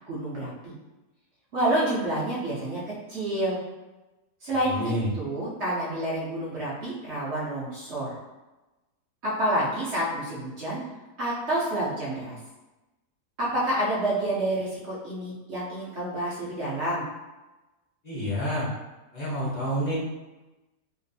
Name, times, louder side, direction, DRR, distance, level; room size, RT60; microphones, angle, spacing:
voice 1, 0.1-0.7 1.5-3.6 4.4-8.2 9.2-10.8 11.2-12.4 13.4-17.0, right 1 dB, 60° right, -6 dB, 0.7 m, -28 dB
voice 2, 4.6-5.1 18.0-18.7 19.1-19.9, equal, 35° left, -9 dB, 0.7 m, -28 dB
3.0 x 2.4 x 2.6 m, 1.1 s
omnidirectional pair, 1.8 m